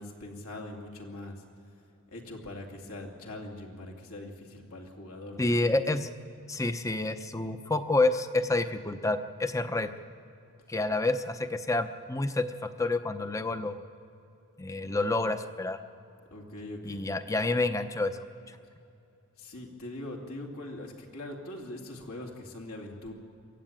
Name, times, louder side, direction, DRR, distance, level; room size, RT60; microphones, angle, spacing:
voice 1, 0.0-1.4 2.1-5.8 16.3-17.0 19.4-23.1, left 1 dB, 75° left, 0 dB, 2.9 m, -42 dB
voice 2, 5.4-6.1 6.5-9.9 10.7-13.8 14.6-15.8 16.8-18.1, left 2 dB, 15° left, 9 dB, 0.7 m, -28 dB
23.5 x 14.0 x 9.0 m, 2.8 s
head